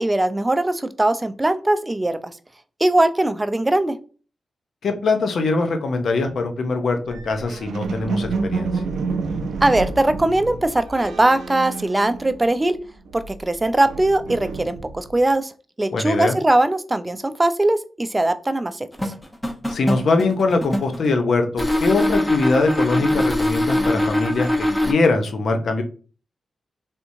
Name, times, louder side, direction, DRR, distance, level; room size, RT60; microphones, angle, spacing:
voice 1, 0.0-2.3 2.8-4.0 9.6-12.8 13.1-15.5 15.8-18.9, right 1 dB, 25° right, 11 dB, 0.4 m, -20 dB
voice 2, 4.8-8.7 15.9-16.4 19.7-25.8, left 3 dB, 75° left, 5 dB, 0.6 m, -22 dB
sound 1, 7.1-12.7 13.0-15.2, right 4 dB, 90° right, 0.4 m, -29 dB
sound 2, 18.9-21.1 21.6-24.9, left 1 dB, 15° left, 0.8 m, -22 dB
3.5 x 2.8 x 2.6 m, 0.38 s
supercardioid pair, 45°, 0 cm